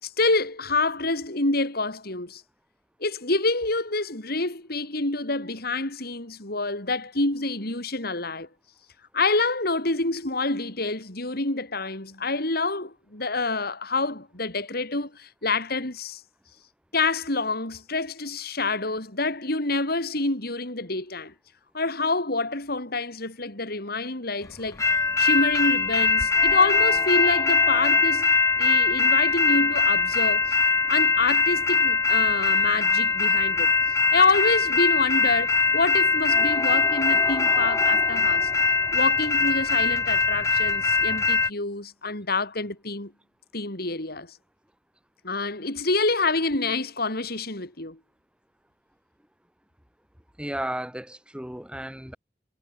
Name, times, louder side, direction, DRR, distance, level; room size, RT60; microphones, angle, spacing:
voice 1, 0.0-2.4 3.0-8.5 9.1-16.2 16.9-21.3 21.7-24.9 25.2-30.6 30.9-33.8 34.1-38.5 38.9-43.1 43.5-44.3 45.2-48.0, left 3 dB, 60° left, 5.3 m, -27 dB
sound 1, 24.8-41.5, left 4 dB, 15° left, 0.4 m, -22 dB
voice 2, 50.4-52.2, right 1 dB, 5° right, 1.6 m, -34 dB
head